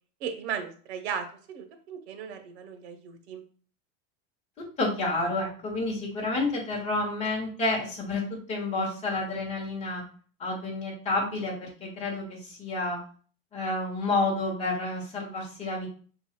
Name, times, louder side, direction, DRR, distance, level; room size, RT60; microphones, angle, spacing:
voice 1, 0.2-3.4, right 7 dB, 90° right, 7 dB, 1.1 m, -36 dB
voice 2, 4.8-8.2 8.5-10.0 10.4-13.0 13.5-15.9, left 2 dB, 20° left, -3 dB, 1.7 m, -29 dB
5.8 x 4.1 x 2.2 m, 0.43 s
supercardioid pair, 165°, 32 cm